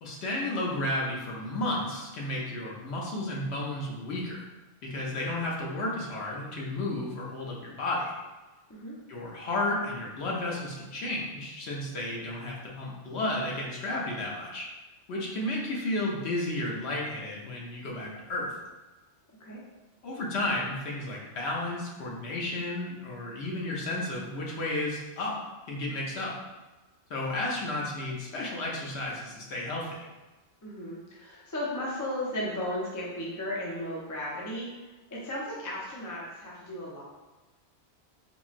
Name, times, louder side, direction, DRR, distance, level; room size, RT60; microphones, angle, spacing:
voice 1, 0.0-4.5 4.8-8.1 9.1-14.7 15.1-18.5 20.0-25.4 25.7-26.3 27.1-29.9, left 1 dB, 70° left, -3 dB, 0.8 m, -32 dB
voice 2, 30.6-34.7 35.1-37.0, left 1 dB, 30° left, -5 dB, 0.3 m, -35 dB
3.7 x 2.0 x 2.4 m, 1.1 s
omnidirectional pair, 1.2 m